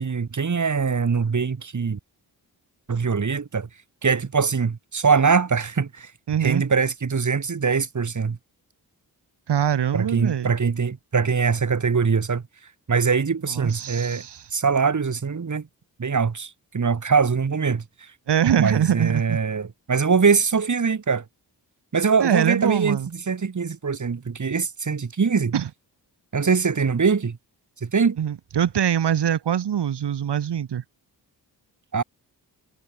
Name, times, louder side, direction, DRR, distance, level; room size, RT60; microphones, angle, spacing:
voice 1, 0.0-2.0 2.9-3.7 4.0-6.1 6.4-8.4 9.9-12.4 12.9-14.2 14.5-15.7 16.0-17.8 18.6-21.2 21.9-23.0 23.3-25.5 26.3-27.4 27.8-28.2 31.9-32.0, right 5 dB, 45° right, 3.5 m, -22 dB
voice 2, 6.3-6.6 9.5-10.5 13.5-14.5 18.3-19.4 22.2-23.1 25.5-25.7 28.2-30.8, right 9 dB, 80° right, 1.5 m, -23 dB
wide cardioid pair, 130°, 40 cm